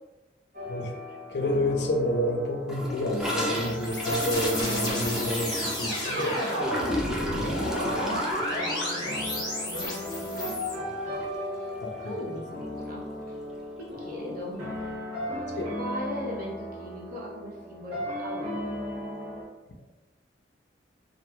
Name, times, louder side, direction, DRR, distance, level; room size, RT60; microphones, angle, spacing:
sound 1, 0.5-19.4, left 1 dB, 85° right, 1.0 m, -37 dB
voice 1, 1.3-6.4 11.8-12.1 15.6-15.7, left 1 dB, 65° left, 2 dB, 0.4 m, -29 dB
Gurgling / Toilet flush, 2.7-11.0 11.2-11.4 11.6-12.1 12.4-12.5 12.7-12.8 13.8-13.9, equal, 5° right, 0.3 m, -35 dB
sound 2, 3.1-10.7, equal, 25° left, 0.8 m, -31 dB
voice 2, 6.7-10.6 11.0-11.3 11.5-13.4 13.8-14.6 15.8-18.5, equal, 50° right, -3 dB, 0.7 m, -40 dB
3.0 x 2.4 x 2.2 m, 1.1 s
head